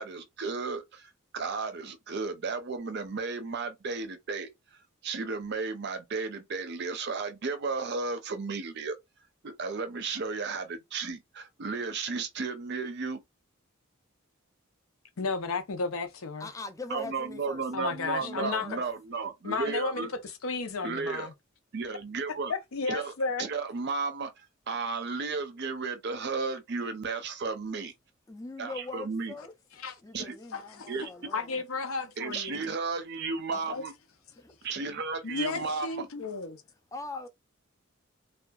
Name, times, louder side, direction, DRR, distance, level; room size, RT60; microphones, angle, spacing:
voice 1, 0.0-9.0 9.4-13.2 16.9-20.1 20.8-21.3 21.7-22.5 22.9-23.1 23.4-27.9 28.6-29.3 30.1-30.4 30.9-31.1 32.2-33.9 34.6-36.1, right 4 dB, 50° right, 0.5 m, -34 dB
voice 2, 15.2-16.5 17.7-18.7 19.4-21.3 22.5-23.5 29.8-29.9 30.5-30.9 31.3-32.6 33.5-33.8 35.2-36.6, left 4 dB, 80° left, 0.6 m, -33 dB
voice 3, 16.4-17.6 18.2-18.8 28.3-29.5 30.0-31.6 32.3-32.4 34.3-34.5 35.6-35.7 36.9-37.3, left 3 dB, 15° left, 0.4 m, -42 dB
2.7 x 2.3 x 2.3 m
head